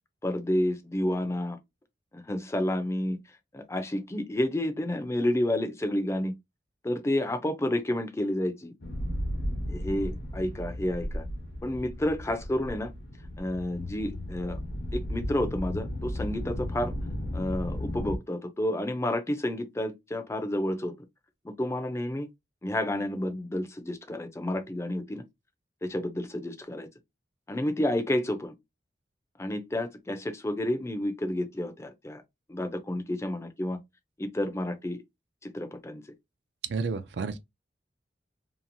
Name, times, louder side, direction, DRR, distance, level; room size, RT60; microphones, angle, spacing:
voice 1, 0.2-1.6 2.1-3.2 3.5-6.4 6.8-8.7 9.7-11.2 11.6-12.9 13.4-14.6 14.9-16.9 17.3-20.9 21.4-22.3 22.6-25.2 25.8-26.9 27.5-28.5 29.4-32.2 32.5-33.8 34.2-35.0 35.4-36.0, left 1 dB, 15° left, 0.4 m, -30 dB
sound 1, 8.8-18.2, left 1 dB, 80° left, 0.9 m, -35 dB
voice 2, 36.7-37.4, right 4 dB, 70° right, 0.4 m, -31 dB
2.9 x 2.3 x 2.6 m
head